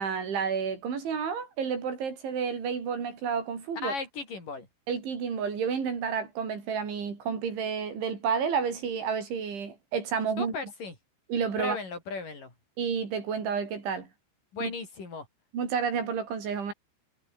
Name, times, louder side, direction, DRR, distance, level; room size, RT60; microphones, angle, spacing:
voice 1, 0.0-3.9 4.9-10.5 11.3-11.8 12.8-14.1 14.6-14.7 15.5-16.7, right 6 dB, 70° right, 7.9 m, -30 dB
voice 2, 3.8-4.7 10.4-10.9 11.6-12.5 14.5-15.3, left 4 dB, 45° left, 8.4 m, -36 dB
omnidirectional pair, 5.5 m